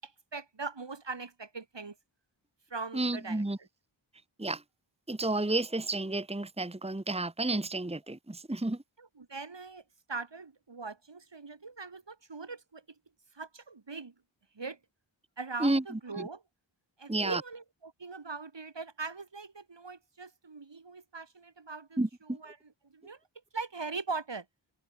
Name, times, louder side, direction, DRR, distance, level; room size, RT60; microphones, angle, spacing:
voice 1, 0.0-1.9 2.7-3.7 9.0-9.8 10.1-12.8 13.3-14.1 14.5-14.8 15.4-16.4 17.0-23.2 23.5-24.4, right 4 dB, 60° right, 3.4 m, -41 dB
voice 2, 2.9-3.6 4.4-4.6 5.1-8.8 15.6-15.8 16.2-16.3 17.1-17.4 22.0-22.1, right 2 dB, 10° right, 1.4 m, -31 dB
cardioid pair, 40°, 48 cm